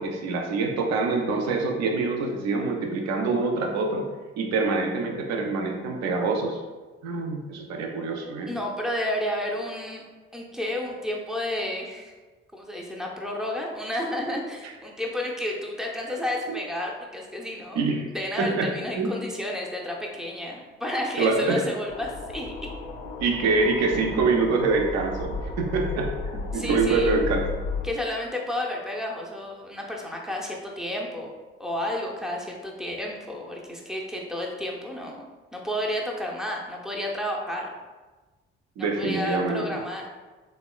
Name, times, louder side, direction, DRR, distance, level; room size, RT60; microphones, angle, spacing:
voice 1, 0.0-4.0 4.4-6.6 7.0-8.5 14.6-14.7 16.5-16.6 17.8-18.1 18.4-18.7 19.0-19.1 21.2-21.6 23.2-27.4 38.8-39.8, right 3 dB, 55° right, 2 dB, 0.5 m, -25 dB
voice 2, 8.5-10.0 10.3-12.1 12.5-17.8 18.1-22.5 26.5-27.2 27.8-31.3 31.6-35.2 35.5-37.7 38.8-40.0, left 1 dB, ahead, -1 dB, 0.5 m, -31 dB
sound 1, 21.9-27.9, left 3 dB, 60° left, 0.4 m, -34 dB
3.5 x 2.1 x 2.3 m, 1.3 s
figure-of-eight pair, 40°, 32 cm